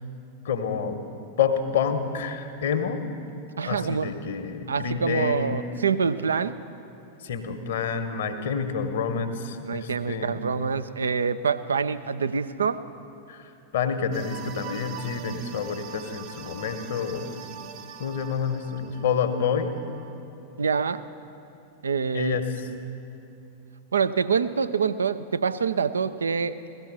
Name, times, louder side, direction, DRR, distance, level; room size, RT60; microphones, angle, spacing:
voice 1, 0.4-1.0 1.4-3.0 3.7-5.6 7.2-10.4 13.3-17.3 18.0-19.7 22.1-22.4, left 6 dB, 60° left, 7 dB, 1.1 m, -28 dB
voice 2, 3.6-4.1 4.7-6.5 9.6-12.8 20.6-21.0 21.8-22.4 23.9-26.6, right 6 dB, 70° right, 12 dB, 0.5 m, -26 dB
sound 1, 14.1-20.2, right 9 dB, 45° right, 0.8 m, -43 dB
17.0 x 13.5 x 6.2 m, 2.8 s
figure-of-eight pair, 90°, 0 cm